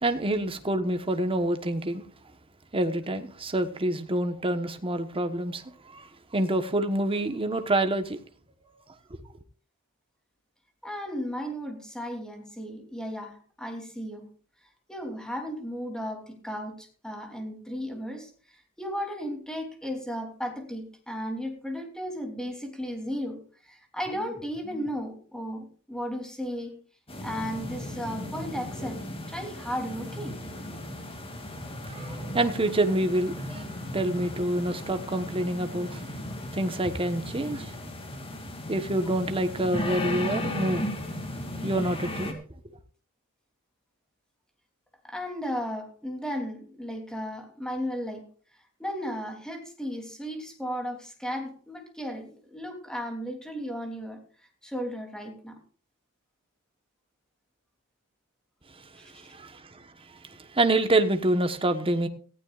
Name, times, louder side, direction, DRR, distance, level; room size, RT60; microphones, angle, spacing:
voice 1, 0.0-2.0 2.7-8.2 9.1-9.2 31.9-33.6 33.9-36.0 36.5-37.8 38.7-40.9 41.6-42.4 58.7-62.1, right 1 dB, 25° right, 1.2 m, -27 dB
voice 2, 10.8-14.3 14.9-26.8 27.2-30.4 45.0-48.3 48.8-55.6 58.9-59.2, equal, 5° left, 3.1 m, -35 dB
sound 1, 27.1-42.3, left 1 dB, 25° left, 2.6 m, -36 dB
18.5 x 15.0 x 2.5 m
head